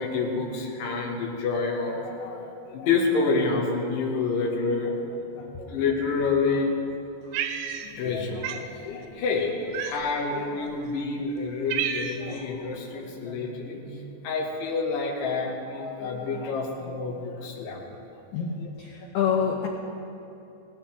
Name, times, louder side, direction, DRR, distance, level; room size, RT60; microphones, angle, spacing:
voice 1, 0.0-6.7 7.8-17.8 18.5-18.7 19.0-19.1, left 4 dB, 60° left, -2 dB, 2.7 m, -28 dB
Cat, 7.3-8.1 8.4-8.7 9.7-10.3 11.0-11.1 11.4-12.4, right 9 dB, 80° right, 2.6 m, -31 dB
voice 2, 18.3-19.7, left 7 dB, 85° left, 0 dB, 2.2 m, -27 dB
18.5 x 16.0 x 3.5 m, 2.7 s
omnidirectional pair, 5.8 m